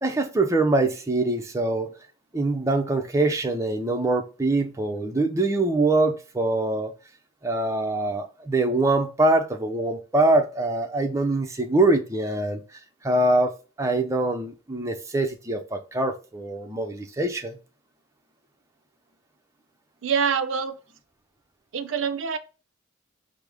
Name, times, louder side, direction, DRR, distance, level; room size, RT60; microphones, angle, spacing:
voice 1, 0.0-1.9 2.3-6.9 7.4-17.6, right 2 dB, 15° right, 0.5 m, -24 dB
voice 2, 20.0-20.8 21.7-22.4, right 6 dB, 65° right, 0.5 m, -25 dB
5.2 x 2.0 x 4.7 m
head